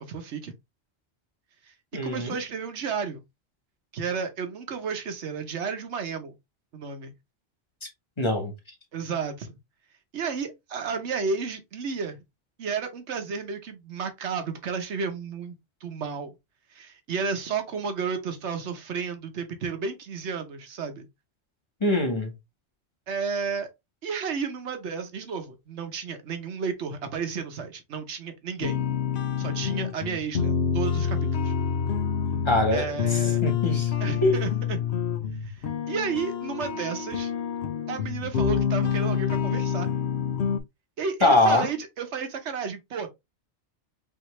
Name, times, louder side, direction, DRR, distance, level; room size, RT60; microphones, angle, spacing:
voice 1, 0.1-0.5 2.0-3.2 3.9-6.4 6.7-7.1 8.9-9.6 10.1-12.2 12.6-16.4 16.7-21.1 23.1-23.7 24.0-28.8 29.4-31.5 32.7-33.4 34.0-34.8 35.4-37.3 37.9-39.9 41.0-43.1, right 5 dB, 80° right, 1.3 m, -32 dB
voice 2, 1.9-2.4 7.8-7.9 8.2-8.5 21.8-22.3 32.4-33.9 34.2-34.4 41.2-41.7, left 2 dB, 25° left, 1.4 m, -23 dB
sound 1, 28.6-40.6, left 8 dB, 70° left, 1.0 m, -27 dB
5.5 x 2.8 x 3.1 m
omnidirectional pair, 1.1 m